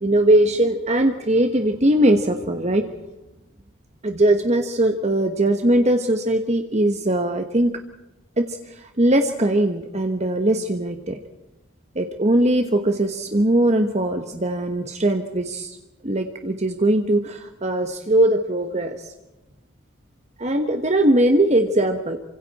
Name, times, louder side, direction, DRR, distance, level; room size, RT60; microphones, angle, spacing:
voice 1, 0.0-2.8 4.0-7.7 8.4-8.5 8.7-11.2 11.9-15.8 16.0-19.0 20.4-22.2, right 1 dB, 35° right, 6 dB, 1.3 m, -20 dB
28.5 x 25.0 x 4.3 m, 1.0 s
head